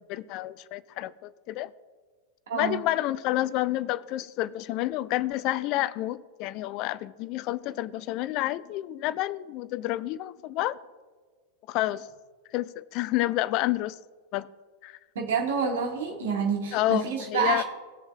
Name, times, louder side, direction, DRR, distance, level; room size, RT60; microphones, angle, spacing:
voice 1, 0.1-1.7 2.5-10.8 11.7-12.1 12.5-14.0 14.3-14.5 14.8-15.0 16.7-17.6, left 15 dB, 40° left, 0.4 m, -29 dB
voice 2, 2.5-2.8 15.2-17.6, right 6 dB, 60° right, 2.1 m, -28 dB
18.5 x 7.1 x 2.5 m
figure-of-eight pair, 90°, 0 cm